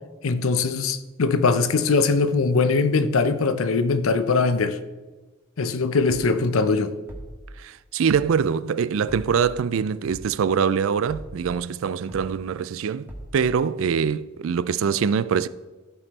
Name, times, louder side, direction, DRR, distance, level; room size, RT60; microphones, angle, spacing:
voice 1, 0.2-4.8 5.6-6.9, left 4 dB, 75° left, 0.6 m, -21 dB
sound 1, 6.1-6.3 7.1-7.5 8.1-8.3 9.1-9.5 10.1-10.3 11.1-11.5 12.1-12.3 13.1-13.5, equal, 10° right, 1.5 m, -40 dB
voice 2, 7.6-15.5, right 6 dB, 70° right, 0.4 m, -24 dB
13.5 x 5.4 x 4.1 m
head